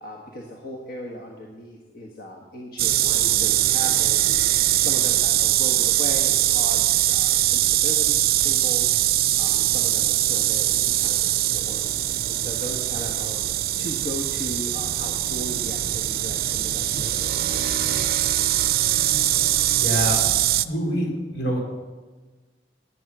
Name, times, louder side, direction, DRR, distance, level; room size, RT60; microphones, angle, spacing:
voice 1, 0.0-4.2 4.8-8.9 9.4-11.9 12.3-13.5 13.8-17.7, left 1 dB, 55° left, -1 dB, 1.4 m, -37 dB
sound 1, 2.8-20.7, right 13 dB, 55° right, 0.5 m, -22 dB
voice 2, 19.8-20.3 20.6-21.6, equal, 75° left, 0 dB, 4.0 m, -26 dB
14.5 x 9.9 x 6.1 m, 1.3 s
head